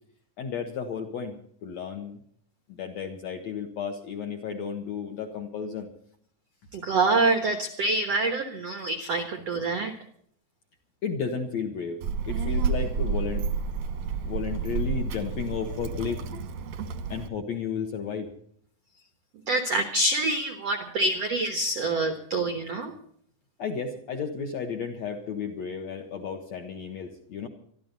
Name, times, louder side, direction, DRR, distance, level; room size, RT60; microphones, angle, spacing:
voice 1, 0.4-1.3 1.6-2.2 2.7-5.9 11.0-12.0 12.3-13.5 14.3-16.2 17.1-18.3 23.6-27.5, left 6 dB, 60° left, 4 dB, 1.8 m, -33 dB
voice 2, 6.7-9.9 19.5-23.0, right 2 dB, 85° right, 7 dB, 1.4 m, -26 dB
Child speech kid speaking, 12.0-17.3, right 5 dB, 65° right, 1.7 m, -30 dB
24.0 x 13.0 x 4.0 m, 0.63 s
omnidirectional pair, 5.0 m